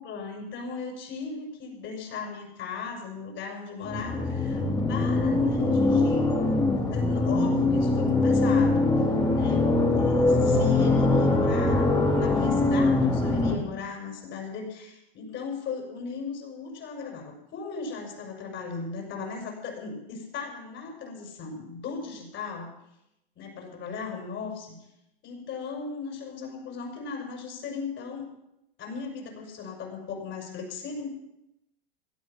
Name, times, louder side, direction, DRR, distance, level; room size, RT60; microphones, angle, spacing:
voice 1, 0.0-4.6 4.9-6.3 6.8-9.0 9.3-22.7 23.4-24.8 25.2-28.3 28.8-31.1, left 4 dB, 40° left, 2 dB, 6.5 m, -37 dB
sound 1, 3.8-13.6, left 2 dB, 15° left, 3.1 m, -23 dB
17.5 x 12.5 x 6.1 m, 0.86 s
hypercardioid pair, 105°, 29 cm